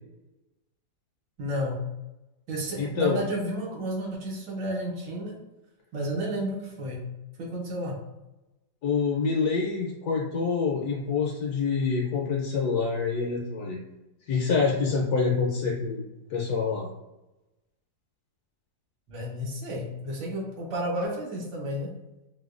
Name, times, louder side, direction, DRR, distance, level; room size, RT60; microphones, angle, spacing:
voice 1, 1.4-1.8 2.5-5.4 5.9-7.0 7.4-8.0 19.1-21.9, right 1 dB, 75° right, -2 dB, 1.5 m, -31 dB
voice 2, 2.8-3.2 8.8-13.8 14.3-16.0 16.3-16.9, left 5 dB, 70° left, -2 dB, 1.0 m, -26 dB
4.7 x 2.2 x 2.4 m, 0.99 s
omnidirectional pair, 2.0 m